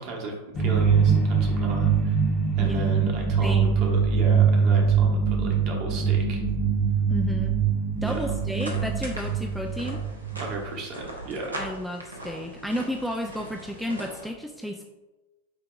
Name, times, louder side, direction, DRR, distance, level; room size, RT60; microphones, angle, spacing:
voice 1, 0.0-2.3 2.5-6.4 8.0-8.4 10.3-11.6, right 2 dB, 40° right, 0 dB, 1.1 m, -35 dB
sound 1, 0.6-10.7, right 6 dB, 25° left, 0.9 m, -23 dB
voice 2, 3.4-3.7 7.1-7.6 8.0-10.0 11.5-14.8, equal, ahead, 2 dB, 0.3 m, -32 dB
sound 2, 8.0-14.3, right 1 dB, 80° right, 0.8 m, -40 dB
8.0 x 2.8 x 2.4 m, 1.1 s
figure-of-eight pair, 90°, 0 cm